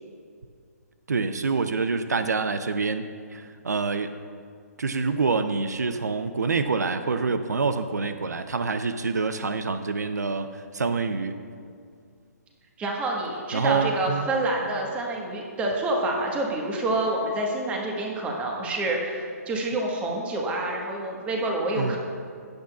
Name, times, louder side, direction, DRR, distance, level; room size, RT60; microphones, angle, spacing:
voice 1, 1.1-4.2 4.8-10.5 10.7-11.4 13.5-14.3 21.8-22.0, right 4 dB, 85° right, 10 dB, 0.6 m, -26 dB
voice 2, 12.8-22.0, right 2 dB, 15° right, 0 dB, 1.4 m, -27 dB
16.0 x 8.8 x 2.4 m, 2.2 s
hypercardioid pair, 145°, 9 cm